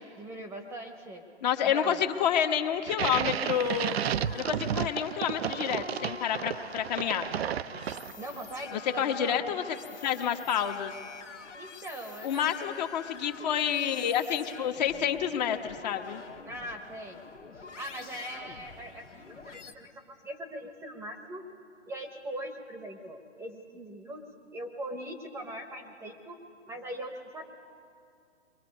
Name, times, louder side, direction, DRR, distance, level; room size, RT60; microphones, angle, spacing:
voice 1, 0.2-1.2 1.6-2.0 8.0-9.4 11.5-12.9 16.4-17.2 17.5-21.4 21.9-24.3 24.5-26.4 26.7-27.4, right 1 dB, 5° right, 5 dB, 0.9 m, -41 dB
voice 2, 1.4-4.0 4.3-7.3 8.7-9.6 10.0-10.9 12.2-16.2, left 9 dB, 35° left, 6 dB, 1.2 m, -29 dB
sound 1, 2.9-8.4, right 9 dB, 60° right, 0.5 m, -32 dB
sound 2, 3.3-19.7, left 5 dB, 80° left, 1.7 m, -47 dB
28.5 x 23.0 x 5.3 m, 2.4 s
hypercardioid pair, 135°, 36 cm